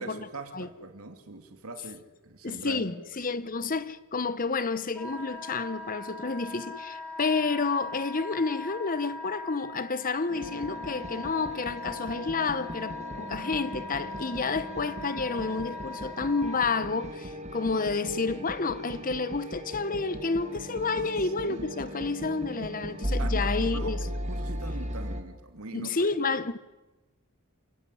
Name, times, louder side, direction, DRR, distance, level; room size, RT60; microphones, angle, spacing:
voice 1, 0.0-2.9 20.9-21.1 21.5-21.7 23.2-26.4, right 2 dB, 85° right, 2.6 m, -42 dB
voice 2, 2.4-24.0 25.7-26.6, left 4 dB, 40° left, 1.1 m, -30 dB
Wind instrument woodwind instrument, 4.9-16.7, left 3 dB, 10° left, 5.5 m, -41 dB
sound 1, 10.3-25.2, equal, 30° right, 2.1 m, -37 dB
28.5 x 16.0 x 10.0 m
head